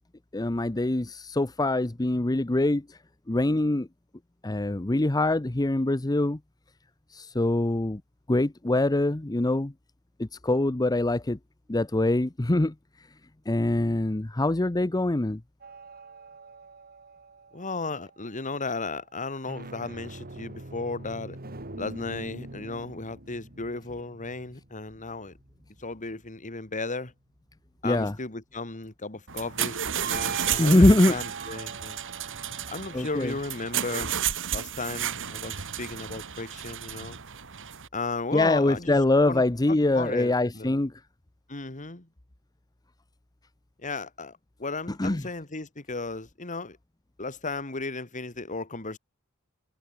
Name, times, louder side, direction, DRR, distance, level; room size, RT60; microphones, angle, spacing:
voice 1, 0.3-2.8 3.3-3.9 4.4-6.4 7.1-8.0 8.3-9.7 10.2-11.4 11.7-12.7 13.5-15.4 27.8-28.1 30.6-31.2 32.9-33.3 38.3-40.9 45.0-45.2, left 2 dB, 15° left, 0.7 m, -24 dB
sound 1, 15.6-18.2 19.3-26.1 30.0-34.2, right 3 dB, 45° right, 3.0 m, -43 dB
voice 2, 17.5-21.4 21.8-25.3 25.8-27.1 27.8-32.0 32.7-34.1 34.5-37.2 37.9-39.0 39.3-40.7 41.5-42.1 43.8-46.8 47.2-49.0, left 3 dB, 35° left, 2.4 m, -35 dB
sound 2, 29.3-37.9, right 9 dB, 60° right, 3.2 m, -32 dB
head